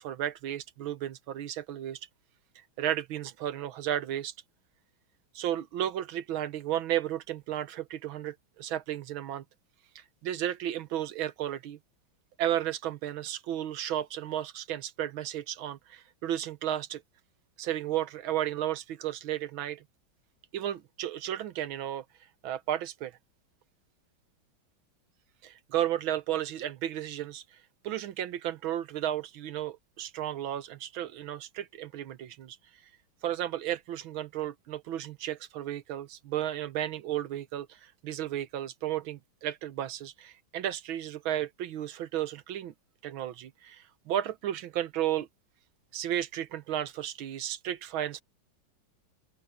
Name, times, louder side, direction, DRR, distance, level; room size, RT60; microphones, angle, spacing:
voice 1, 0.0-2.0 2.6-4.3 5.4-9.4 10.0-11.8 12.4-17.0 17.6-19.8 20.5-22.1 22.4-23.2 25.4-27.6 27.8-32.6 33.2-42.7 43.0-45.3 45.9-48.2, right 11 dB, 80° right, 1.7 m, -33 dB
open air
omnidirectional pair, 2.2 m